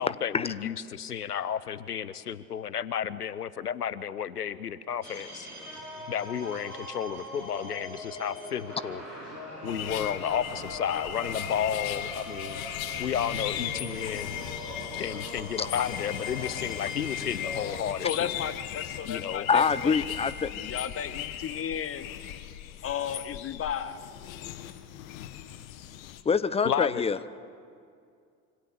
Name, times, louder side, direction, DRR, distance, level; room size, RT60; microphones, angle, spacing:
voice 1, 0.0-5.5 6.1-9.0 9.6-12.6 13.0-14.4 14.9-18.3 19.1-19.5 26.6-27.0, left 8 dB, 85° left, 17 dB, 0.7 m, -32 dB
sound 1, 5.0-17.8, equal, 85° right, 4.7 m, -41 dB
sound 2, 9.6-26.2, left 11 dB, 60° left, 1.5 m, -37 dB
voice 2, 18.0-19.9 20.5-22.1 22.8-24.0, left 8 dB, 30° left, 12 dB, 1.5 m, -33 dB
voice 3, 19.5-20.5 26.2-27.2, left 5 dB, 15° left, 16 dB, 0.8 m, -25 dB
26.0 x 25.0 x 6.7 m, 2.3 s
figure-of-eight pair, 65°, 46 cm